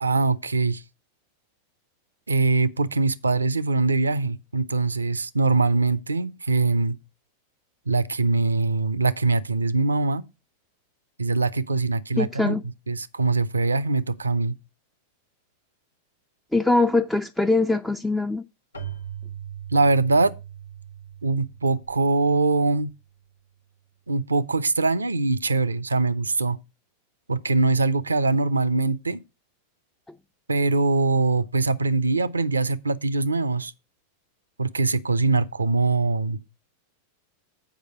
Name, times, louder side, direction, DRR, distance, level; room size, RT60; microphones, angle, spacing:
voice 1, 0.0-0.8 2.3-7.0 7.9-10.2 11.2-12.6 12.9-14.5 19.7-20.3 21.2-22.9 24.1-26.6 27.3-29.2 30.5-33.7 34.6-36.4, right 3 dB, 75° right, 0.5 m, -22 dB
voice 2, 12.2-12.6 16.5-18.4, left 2 dB, 5° left, 0.4 m, -22 dB
Keyboard (musical), 18.7-23.2, right 9 dB, 80° left, 0.9 m, -40 dB
8.0 x 5.0 x 6.4 m
figure-of-eight pair, 90°, 0 cm